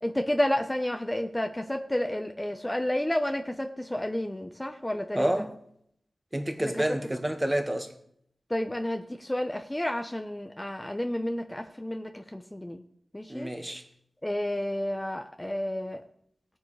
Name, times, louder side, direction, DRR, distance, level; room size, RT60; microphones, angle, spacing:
voice 1, 0.0-5.5 6.6-6.7 8.5-12.8 13.1-13.5 14.2-16.0, left 1 dB, 15° left, 0.9 m, -31 dB
voice 2, 5.1-5.5 6.3-7.9 13.3-13.8, right 1 dB, 20° right, 1.7 m, -29 dB
18.5 x 9.5 x 3.4 m
wide cardioid pair, 60°, 0 cm